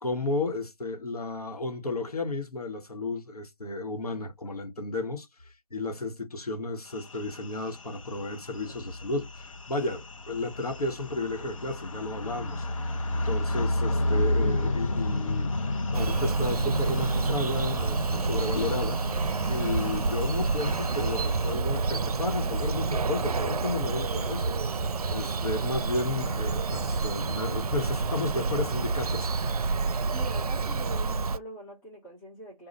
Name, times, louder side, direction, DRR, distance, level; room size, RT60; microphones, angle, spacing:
voice 1, 0.0-5.3 5.7-12.6 13.1-15.5 15.9-19.0 19.5-24.5 25.1-29.6, left 2 dB, 80° left, 1.2 m, -33 dB
sound 1, 6.9-21.5, left 2 dB, 60° left, 0.8 m, -32 dB
Bird vocalization bird call bird song, 15.9-31.4, right 4 dB, 75° right, 0.5 m, -28 dB
voice 2, 30.1-32.7, right 1 dB, 5° left, 0.5 m, -43 dB
4.1 x 2.4 x 4.0 m
figure-of-eight pair, 150°, 19 cm